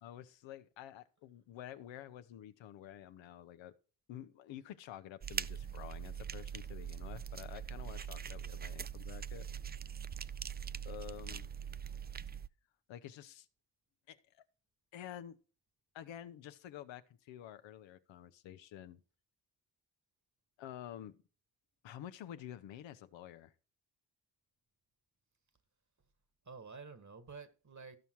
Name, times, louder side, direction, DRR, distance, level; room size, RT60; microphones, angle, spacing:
voice 1, 0.0-3.7 4.1-9.5 10.8-11.5 12.9-13.5 14.1-14.4 14.9-15.4 15.9-19.0 20.6-21.2 21.8-23.5, left 11 dB, 90° left, 0.8 m, -49 dB
sound 1, 5.2-12.5, right 8 dB, 25° right, 0.4 m, -42 dB
voice 2, 26.4-28.0, right 4 dB, 40° right, 1.7 m, -51 dB
14.0 x 5.7 x 4.6 m
supercardioid pair, 45°, 44 cm